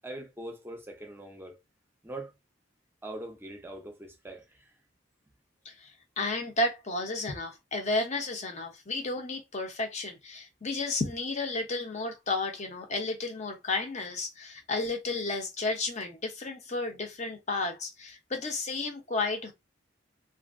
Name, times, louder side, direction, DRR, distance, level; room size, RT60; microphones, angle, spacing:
voice 1, 0.0-1.6 2.0-2.3 3.0-4.7, right 1 dB, 10° right, 0.7 m, -42 dB
voice 2, 6.2-19.5, left 2 dB, 40° left, 0.8 m, -32 dB
2.7 x 2.5 x 2.5 m
head